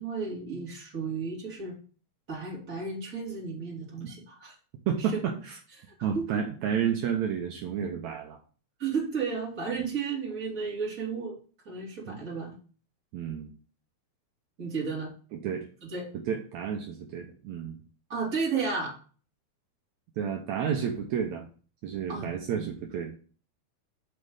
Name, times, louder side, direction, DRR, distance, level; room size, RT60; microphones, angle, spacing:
voice 1, 0.0-1.8 2.3-4.6 5.0-5.2 6.1-6.4 8.8-11.4 11.6-12.5 14.6-15.1 15.8-16.1 18.1-18.9 22.1-22.3, right 5 dB, 25° right, -3 dB, 2.8 m, -33 dB
voice 2, 4.9-5.6 6.0-8.4 12.1-12.2 13.1-13.5 15.3-15.7 16.3-17.8 20.2-21.4 21.8-23.1, right 8 dB, 75° right, 2 dB, 1.7 m, -31 dB
5.6 x 5.2 x 6.4 m, 0.39 s
omnidirectional pair, 4.5 m